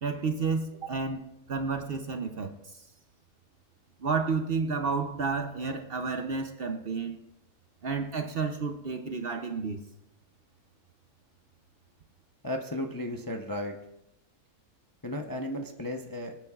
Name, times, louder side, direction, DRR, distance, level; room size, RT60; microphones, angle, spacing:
voice 1, 0.0-1.2 1.5-2.9 4.0-7.2 7.8-9.8, right 4 dB, 50° right, 7 dB, 0.8 m, -31 dB
voice 2, 12.4-13.8 15.0-16.4, left 1 dB, 25° left, 3 dB, 0.5 m, -34 dB
24.5 x 9.1 x 2.4 m, 0.88 s
omnidirectional pair, 1.5 m